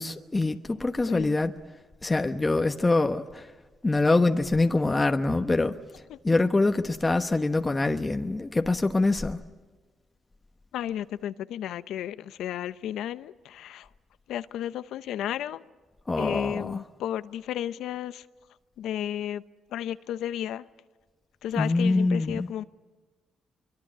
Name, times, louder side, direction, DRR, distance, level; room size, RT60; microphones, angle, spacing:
voice 1, 0.0-1.5 2.0-3.5 3.8-5.8 6.2-9.4 16.1-16.8 21.5-22.5, left 2 dB, 25° left, 1.1 m, -24 dB
voice 2, 10.7-13.9 14.3-15.6 16.2-18.2 18.8-19.4 19.7-20.6 21.4-22.6, left 11 dB, 80° left, 0.8 m, -33 dB
24.5 x 24.0 x 8.8 m
supercardioid pair, 70°, 0 cm